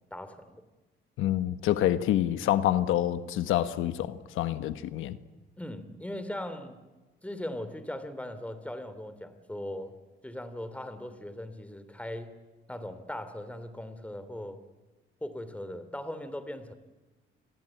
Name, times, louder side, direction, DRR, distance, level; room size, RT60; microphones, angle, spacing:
voice 1, 0.1-0.6 5.6-6.8 7.2-10.0 10.2-12.3 12.7-14.6 15.2-16.7, left 1 dB, 5° left, 3.2 m, -39 dB
voice 2, 1.2-5.2, left 12 dB, 90° left, 1.2 m, -27 dB
28.5 x 21.0 x 9.0 m
cardioid pair, 90°, 20 cm